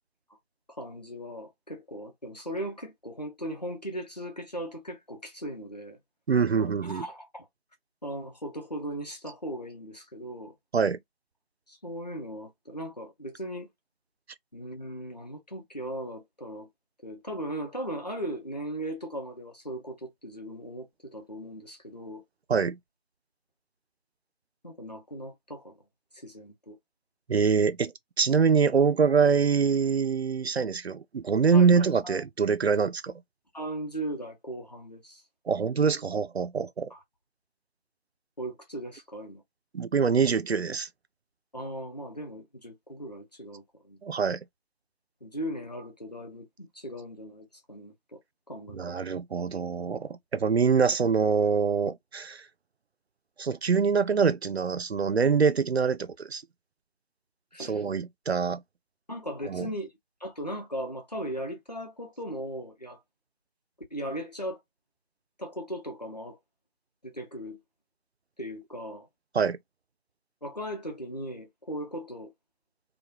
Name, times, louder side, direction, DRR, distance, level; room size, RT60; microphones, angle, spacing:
voice 1, 0.8-6.0 6.6-7.5 8.0-10.5 11.7-13.7 14.5-16.7 17.0-22.2 24.6-25.8 26.1-26.8 31.5-31.7 32.0-32.2 33.5-35.2 36.9-37.0 38.4-39.4 41.5-44.0 45.2-48.2 48.5-48.9 57.5-57.8 59.1-59.9 60.2-63.0 63.9-64.6 65.4-66.4 67.0-67.6 68.4-69.1 70.4-72.3, equal, 40° left, 1.0 m, -38 dB
voice 2, 6.3-7.0 10.7-11.0 22.5-22.8 27.3-33.2 35.5-36.9 39.7-40.9 44.0-44.4 48.7-52.4 53.4-56.4 57.6-58.6 59.5-59.7 69.3-69.6, right 5 dB, 80° right, 0.5 m, -24 dB
3.1 x 2.2 x 2.7 m
figure-of-eight pair, 175°, 31 cm